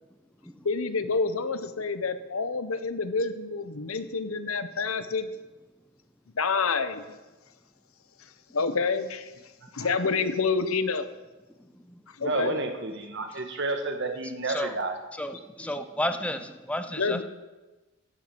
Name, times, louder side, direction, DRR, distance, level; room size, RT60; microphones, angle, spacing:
voice 1, 0.6-5.3 6.3-7.2 8.2-9.3 9.7-11.1 12.1-12.6 17.0-17.2, left 4 dB, 80° left, 11 dB, 0.9 m, -28 dB
voice 2, 12.2-15.0, right 3 dB, 55° right, 5 dB, 1.6 m, -31 dB
voice 3, 15.2-17.2, left 1 dB, 5° left, 9 dB, 0.6 m, -32 dB
12.5 x 7.4 x 8.0 m, 1.1 s
head